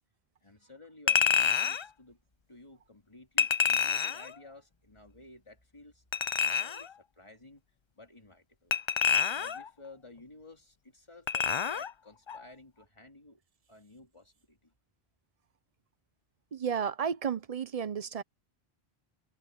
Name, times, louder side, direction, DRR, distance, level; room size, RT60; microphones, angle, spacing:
voice 1, 0.4-2.2 2.5-6.0 6.4-7.6 7.9-8.8 9.3-13.4 13.7-14.7, left 2 dB, 30° left, 3.4 m, -54 dB
Chink clink, 1.1-1.9 3.4-4.3 6.1-6.9 8.7-9.7 11.3-11.9 12.3-12.4, left 7 dB, 50° left, 0.3 m, -27 dB
voice 2, 16.5-18.2, right 7 dB, 40° right, 0.7 m, -32 dB
omnidirectional pair, 1.1 m